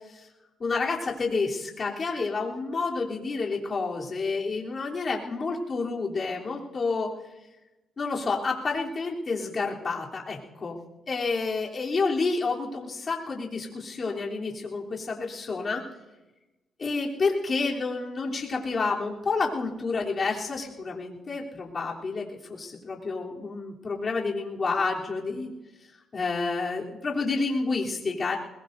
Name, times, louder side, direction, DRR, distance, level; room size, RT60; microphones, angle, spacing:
voice 1, 0.6-7.1 8.0-10.8 11.1-15.8 16.8-25.5 26.1-28.4, left 4 dB, 40° left, -2 dB, 3.4 m, -29 dB
21.5 x 21.0 x 2.7 m, 1.1 s
cardioid pair, 90°, 0 cm